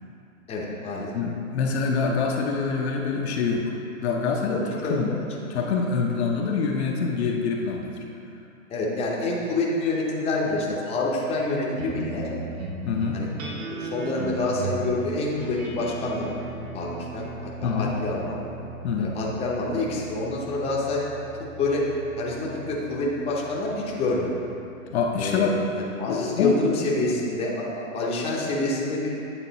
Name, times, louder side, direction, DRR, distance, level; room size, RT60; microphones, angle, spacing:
voice 1, 0.5-1.1 4.5-5.2 5.5-5.7 8.7-12.3 13.1-13.3 13.7-16.3 16.7-18.4 19.0-21.0 21.6-21.8 22.2-24.3 25.2-25.6 26.0-29.1, left 2 dB, 15° left, -4 dB, 0.8 m, -27 dB
voice 2, 1.1-3.7 4.0-5.1 5.5-8.0 12.8-13.2 17.6-17.9 18.8-19.2 24.9-25.5 26.1-26.6, left 5 dB, 50° left, 0 dB, 0.7 m, -25 dB
sound 1, 11.8-26.5, right 2 dB, 75° right, 1.1 m, -38 dB
8.9 x 3.6 x 4.0 m, 2.8 s
hypercardioid pair, 125°, 41 cm